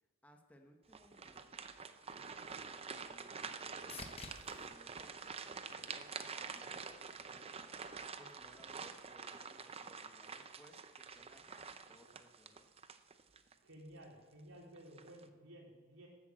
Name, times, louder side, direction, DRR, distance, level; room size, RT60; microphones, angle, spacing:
voice 1, 0.2-1.5 2.1-12.7, equal, 10° left, 3 dB, 1.1 m, -64 dB
sound 1, 0.9-13.5 14.0-14.2 14.8-15.2, right 5 dB, 30° right, 0.6 m, -47 dB
sound 2, 2.8-6.4 6.9-7.5 15.3-15.4, left 4 dB, 30° left, 1.0 m, -56 dB
sound 3, 4.2-5.5, left 1 dB, 50° left, 3.6 m, -66 dB
voice 2, 13.6-16.1, right 1 dB, 85° right, -2 dB, 3.8 m, -55 dB
12.5 x 8.3 x 7.6 m, 1.4 s
head